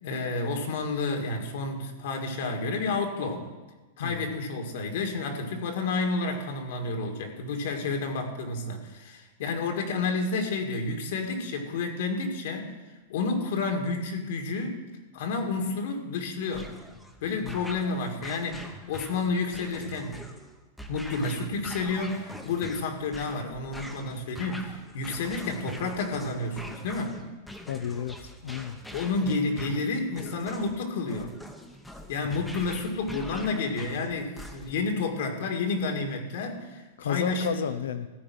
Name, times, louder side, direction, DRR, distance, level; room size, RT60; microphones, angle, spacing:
voice 1, 0.0-3.5 4.0-12.7 13.1-14.8 15.1-16.7 17.2-20.2 20.9-27.2 28.9-31.3 32.1-37.6, left 3 dB, 65° left, 4 dB, 2.0 m, -30 dB
lazer gun battle, 16.5-34.9, equal, 5° left, 0.9 m, -44 dB
voice 2, 17.3-17.6 27.7-28.8 32.2-32.5 37.0-38.1, left 8 dB, 90° left, 11 dB, 0.7 m, -32 dB
14.0 x 5.0 x 8.9 m, 1.2 s
supercardioid pair, 155°, 0 cm